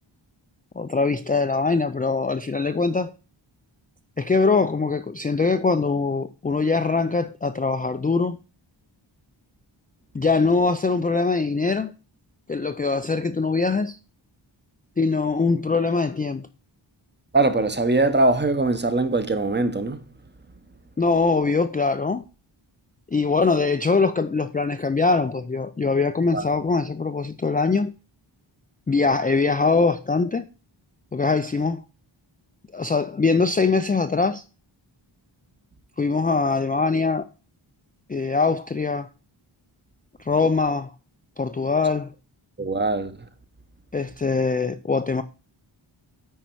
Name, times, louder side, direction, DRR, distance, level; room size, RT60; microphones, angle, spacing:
voice 1, 0.8-3.1 4.2-8.4 10.1-11.9 12.5-14.0 15.0-16.5 21.0-22.2 23.1-27.9 28.9-30.4 31.1-31.8 32.7-34.4 36.0-37.2 38.1-39.1 40.2-40.9 41.4-42.1 43.9-45.2, left 4 dB, 20° left, 0.4 m, -22 dB
voice 2, 17.3-20.0 26.3-26.4 42.6-43.1, right 2 dB, 20° right, 0.9 m, -21 dB
9.2 x 4.5 x 4.6 m
wide cardioid pair, 65°, 47 cm